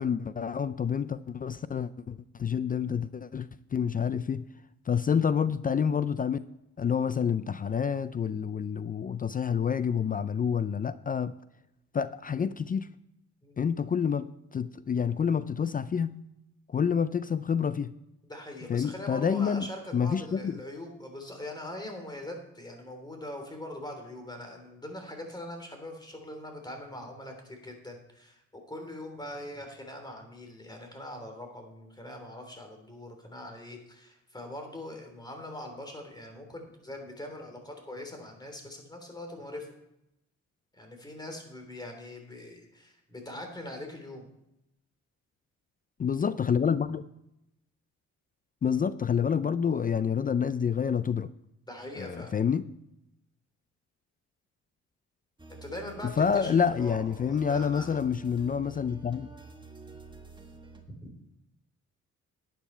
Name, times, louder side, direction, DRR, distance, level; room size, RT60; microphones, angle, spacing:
voice 1, 0.0-4.4 4.9-6.4 6.8-11.3 11.9-12.9 13.6-14.3 14.5-16.2 16.7-17.9 18.7-19.7 19.9-20.6 46.0-47.0 48.6-51.3 52.0-52.6 56.2-59.3, left 7 dB, 30° left, 15 dB, 0.4 m, -28 dB
voice 2, 18.2-39.7 40.7-44.3 51.7-52.3 55.6-58.0 60.9-61.1, left 1 dB, 15° left, 4 dB, 3.3 m, -42 dB
sound 1, 55.4-60.8, right 3 dB, 15° right, 1.6 m, -49 dB
11.5 x 9.3 x 4.5 m, 0.85 s
cardioid pair, 90°, 30 cm